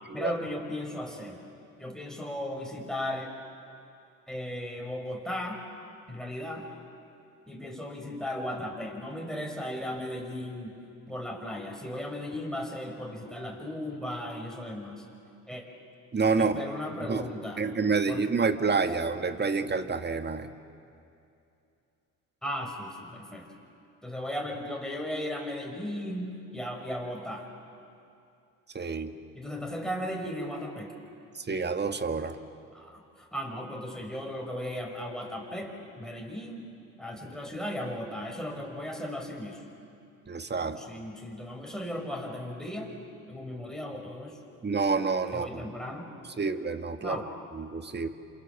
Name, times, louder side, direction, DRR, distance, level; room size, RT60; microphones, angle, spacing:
voice 1, 0.1-1.4 1.8-3.3 4.3-5.6 6.1-6.7 7.5-10.8 11.1-15.0 15.5-15.6 16.4-17.6 18.1-18.2 22.4-23.5 24.0-27.5 29.3-30.9 32.7-36.7 37.0-39.6 40.6-42.9 43.3-44.4 45.3-46.1 47.0-47.3, left 1 dB, ahead, 1 dB, 5.9 m, -36 dB
voice 2, 16.1-16.6 17.1-17.2 17.6-20.5 28.7-29.1 31.4-32.4 40.3-40.8 44.6-45.7 46.4-47.2 47.5-48.1, right 4 dB, 25° right, 8 dB, 1.8 m, -28 dB
27.5 x 27.0 x 7.5 m, 2.6 s
hypercardioid pair, 65°, 40 cm